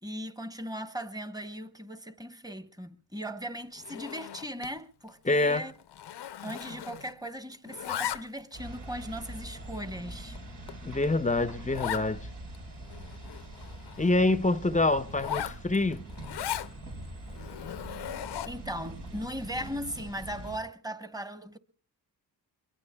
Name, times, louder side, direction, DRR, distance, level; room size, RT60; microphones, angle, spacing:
voice 1, 0.0-5.7 6.4-10.4 18.4-21.6, equal, 10° right, 1.1 m, -38 dB
Zipper (clothing), 3.8-4.8 5.1-5.3 5.6-7.3 7.5-8.5 9.1-9.2 9.8-9.9 10.3-10.4 10.7-10.8 11.0-11.1 11.7-12.1 12.5-12.6 12.8-14.1 15.1-16.7 17.3-18.7, left 11 dB, 85° left, 0.7 m, -38 dB
voice 2, 5.2-5.7 10.8-12.3 14.0-16.0, left 2 dB, 20° left, 0.7 m, -26 dB
sound 1, 8.5-20.6, right 1 dB, 85° right, 4.3 m, -43 dB
23.0 x 22.5 x 2.3 m
cardioid pair, 70°, 40 cm